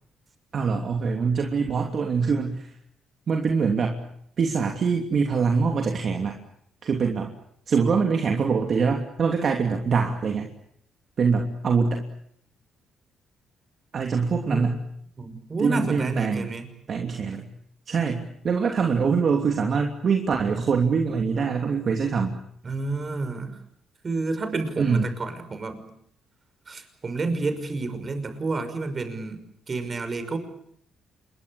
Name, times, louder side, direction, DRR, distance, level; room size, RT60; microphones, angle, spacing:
voice 1, 0.5-2.7 3.3-4.0 4.4-6.4 6.8-7.3 7.7-10.5 11.2-12.0 13.9-14.8 15.6-16.5 16.9-17.5 17.9-22.4 24.8-25.0, right 5 dB, 50° right, 3 dB, 3.0 m, -24 dB
voice 2, 14.1-14.7 15.2-16.7 22.6-23.6 24.0-25.9 26.7-29.4 29.7-30.4, right 3 dB, 35° right, 9 dB, 5.9 m, -30 dB
27.5 x 22.5 x 8.6 m, 0.71 s
cardioid pair, 90°, 0 cm